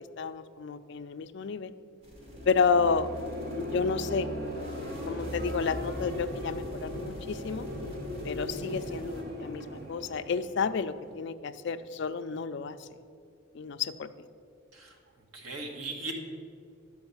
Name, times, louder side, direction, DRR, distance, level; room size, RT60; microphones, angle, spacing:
voice 1, 0.2-1.7 2.5-3.1 3.6-4.3 5.1-7.7 8.2-12.9 13.5-14.1, left 5 dB, 55° left, 10 dB, 0.4 m, -30 dB
sound 1, 2.0-9.2, equal, 30° right, 1.5 m, -52 dB
sound 2, 2.1-11.1, left 1 dB, 45° right, 1.0 m, -38 dB
voice 2, 15.3-16.1, right 2 dB, 75° right, 2 dB, 1.5 m, -38 dB
10.5 x 4.7 x 7.0 m, 2.3 s
head